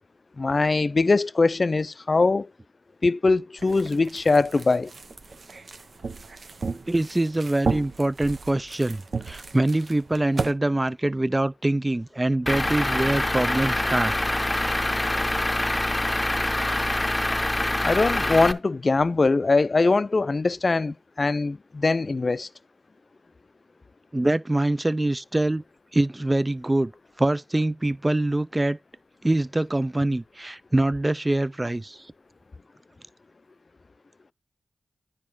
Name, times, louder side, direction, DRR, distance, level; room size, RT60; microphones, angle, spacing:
voice 1, 0.4-2.5 3.0-4.9 17.8-22.5, left 3 dB, 50° left, 0.4 m, -22 dB
sound 1, 3.6-10.5, right 4 dB, 65° right, 0.7 m, -34 dB
voice 2, 6.9-14.1 24.1-25.6 25.9-26.9 27.2-28.8 29.2-32.0, right 1 dB, 25° right, 0.4 m, -24 dB
Truck / Idling, 12.5-18.5, left 1 dB, 20° left, 0.7 m, -25 dB
9.7 x 4.1 x 4.6 m
cardioid pair, 50°, 0 cm